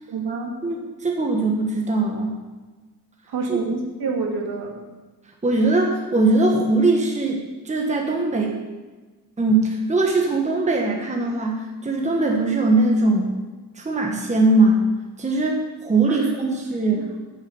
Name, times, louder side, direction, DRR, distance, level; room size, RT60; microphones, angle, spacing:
voice 1, 0.1-0.6 3.3-4.7 16.1-16.2 16.9-17.0, right 4 dB, 70° right, 0 dB, 2.4 m, -27 dB
voice 2, 0.6-2.3 3.5-3.6 5.4-8.6 9.4-13.3 13.7-14.8 15.2-17.0, right 2 dB, 15° right, 0 dB, 1.3 m, -21 dB
9.1 x 7.4 x 7.9 m, 1.3 s
wide cardioid pair, 155°, 40 cm